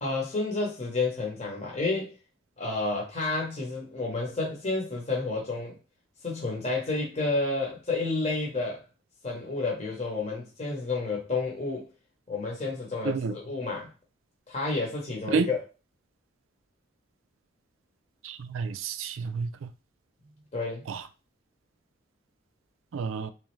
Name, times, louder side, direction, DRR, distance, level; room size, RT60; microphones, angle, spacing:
voice 1, 0.0-2.1 2.6-5.8 6.2-8.8 9.2-11.9 12.3-13.9 14.5-15.7 20.5-20.8, left 3 dB, 35° left, 0.9 m, -30 dB
voice 2, 18.2-19.5 22.9-23.3, right 5 dB, 85° right, 0.4 m, -29 dB
3.5 x 3.1 x 3.1 m
head